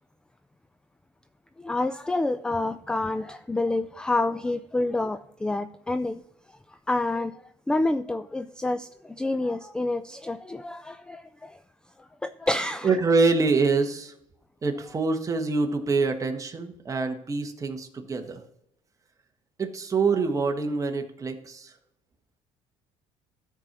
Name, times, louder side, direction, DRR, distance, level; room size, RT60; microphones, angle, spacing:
voice 1, 1.6-6.2 6.7-11.6 12.0-12.9, left 2 dB, 5° left, 0.3 m, -28 dB
voice 2, 12.8-14.1 14.6-18.4 19.6-21.7, right 4 dB, 25° right, 1.4 m, -25 dB
13.0 x 4.5 x 5.9 m
cardioid pair, 115°, 13 cm